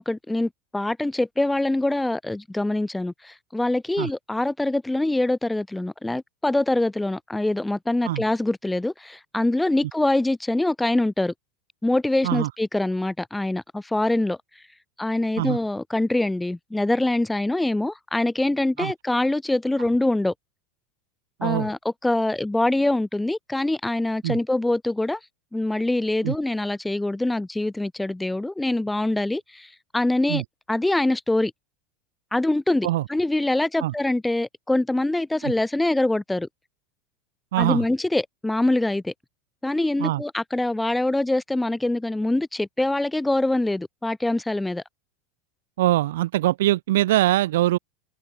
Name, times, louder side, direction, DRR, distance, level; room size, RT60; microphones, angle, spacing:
voice 1, 0.0-11.3 11.8-14.4 15.0-20.3 21.4-25.2 25.5-30.4 30.7-31.5 32.3-36.5 37.6-39.1 39.6-44.8, left 2 dB, 5° left, 2.5 m, -24 dB
voice 2, 37.5-37.8 40.0-40.2 45.8-47.8, right 15 dB, 75° right, 0.5 m, -22 dB
hypercardioid pair, 95°, 0 cm